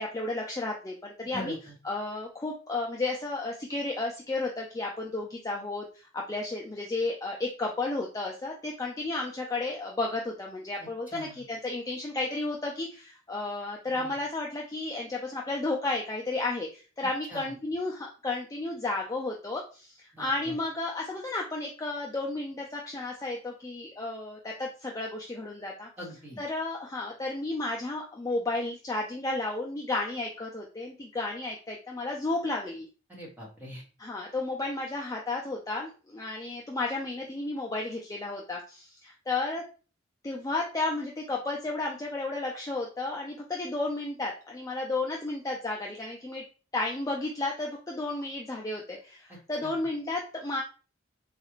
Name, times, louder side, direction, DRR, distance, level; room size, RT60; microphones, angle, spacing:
voice 1, 0.0-1.5 1.8-25.9 26.4-32.9 34.0-39.6 40.2-46.4 46.7-50.6, left 2 dB, 15° left, -1 dB, 0.3 m, -33 dB
voice 2, 1.3-1.7 11.1-11.4 13.9-14.1 17.3-17.5 20.1-20.5 26.0-26.4 33.1-33.8 49.3-49.8, right 1 dB, 10° right, -4 dB, 1.1 m, -43 dB
4.0 x 2.4 x 3.0 m, 0.35 s
head